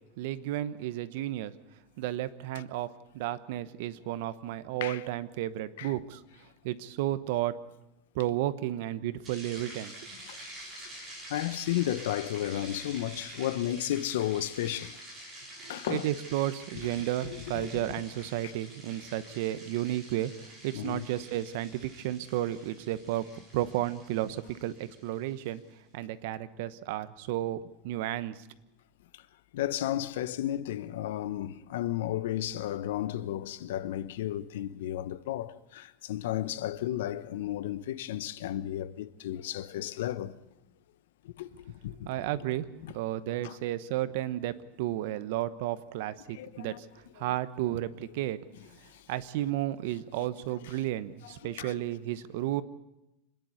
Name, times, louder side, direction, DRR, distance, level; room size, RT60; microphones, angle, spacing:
voice 1, 0.2-1.5 2.0-6.2 6.6-7.6 8.1-9.9 15.9-25.6 25.9-28.4 42.0-42.7 42.9-46.9 47.2-48.4 49.1-52.6, right 13 dB, 60° right, 1.0 m, -33 dB
sound 1, 9.2-25.5, right 1 dB, 15° right, 6.4 m, -48 dB
voice 2, 11.3-15.0 15.7-16.1 17.2-17.7 20.7-21.0 29.1-29.2 29.5-40.3 41.2-42.1 42.8-42.9 43.4-43.5 46.3-46.8 48.9-49.0 51.4-51.8, left 12 dB, 90° left, 1.0 m, -33 dB
26.0 x 10.5 x 9.6 m
supercardioid pair, 165°, 0 cm